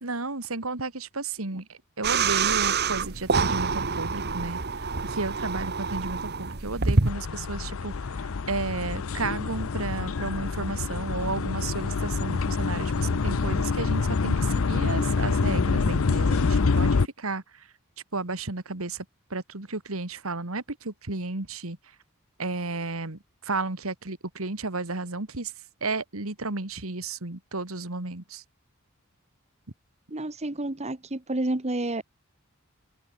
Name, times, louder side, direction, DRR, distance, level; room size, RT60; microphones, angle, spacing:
voice 1, 0.0-7.9 8.2-17.7 18.1-19.0 19.3-21.8 22.4-25.5 25.8-28.4, right 3 dB, 85° right, 2.5 m, -33 dB
sound 1, 2.0-7.1, right 4 dB, 50° right, 1.6 m, -26 dB
sound 2, 7.1-17.1, left 4 dB, 75° left, 0.6 m, -26 dB
voice 2, 30.1-32.0, right 1 dB, 30° right, 1.4 m, -30 dB
open air
head